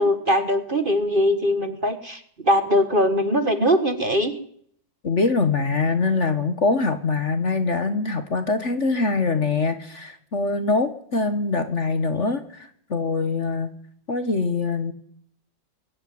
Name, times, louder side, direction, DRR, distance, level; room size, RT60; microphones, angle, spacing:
voice 1, 0.0-4.3, equal, 30° right, 10 dB, 1.6 m, -21 dB
voice 2, 5.0-13.7 14.1-14.9, left 3 dB, 40° left, 10 dB, 1.7 m, -23 dB
22.0 x 16.5 x 9.5 m, 0.65 s
omnidirectional pair, 2.0 m